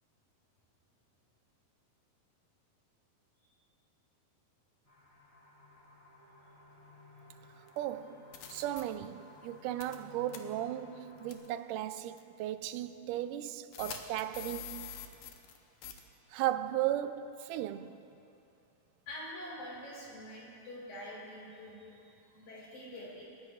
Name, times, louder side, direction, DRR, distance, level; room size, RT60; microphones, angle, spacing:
sound 1, 4.8-11.3, left 2 dB, 10° left, 3.2 m, -57 dB
sound 2, 7.7-7.8 8.3-8.8 9.8-10.0 10.3-10.4 11.3-11.5 12.2-12.3 13.7-15.6 15.8-16.0, left 8 dB, 90° left, 2.6 m, -44 dB
voice 1, 7.8-14.9 16.3-18.0, right 12 dB, 90° right, 2.1 m, -36 dB
voice 2, 19.1-23.2, left 1 dB, 70° left, 5.5 m, -46 dB
28.0 x 14.5 x 2.5 m
omnidirectional pair, 3.6 m